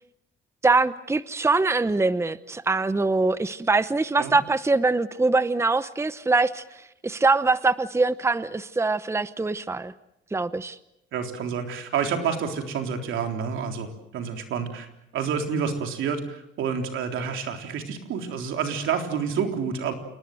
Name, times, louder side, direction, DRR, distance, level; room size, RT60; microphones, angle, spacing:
voice 1, 0.6-6.6 7.0-9.9 10.3-10.8, right 3 dB, 15° right, 14 dB, 0.8 m, -23 dB
voice 2, 11.1-14.9 15.1-19.9, right 6 dB, 80° right, 4 dB, 3.7 m, -29 dB
28.0 x 19.5 x 7.8 m, 0.82 s
cardioid pair, 90°, 20 cm